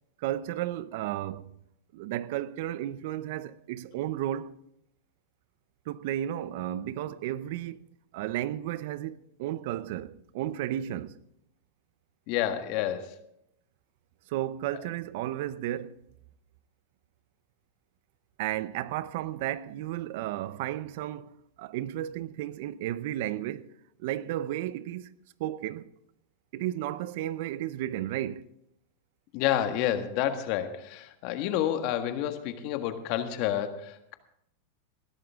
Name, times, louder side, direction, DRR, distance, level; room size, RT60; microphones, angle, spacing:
voice 1, 0.2-1.6 1.9-4.6 5.9-7.9 8.1-11.2 14.3-16.0 18.4-23.7 24.0-25.1 25.4-25.9 26.5-28.5, right 13 dB, 65° right, 0.6 m, -33 dB
voice 2, 12.3-13.1 29.3-34.1, left 11 dB, 55° left, 1.6 m, -29 dB
19.0 x 12.5 x 3.6 m
hypercardioid pair, 115°, 0 cm